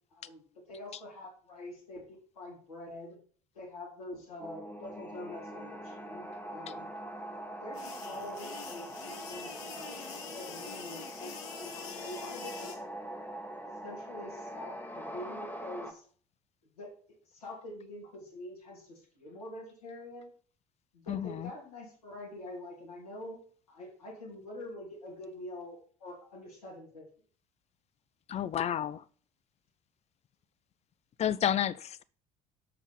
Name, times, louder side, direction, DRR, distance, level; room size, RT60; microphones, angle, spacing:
voice 1, 0.1-3.2 3.5-6.9 7.6-10.0 10.3-12.8 13.8-16.0 16.8-16.9 17.3-20.3 20.9-23.4 23.7-27.0, left 1 dB, 80° left, -5 dB, 3.1 m, -45 dB
sound 1, 4.4-15.9, right 1 dB, 10° left, 1.5 m, -43 dB
sound 2, 7.7-12.8, left 6 dB, 60° left, 1.5 m, -45 dB
voice 2, 21.1-21.5 28.3-29.0 31.2-32.0, left 10 dB, 35° left, 18 dB, 0.5 m, -31 dB
7.2 x 5.6 x 5.3 m, 0.44 s
figure-of-eight pair, 55°, 19 cm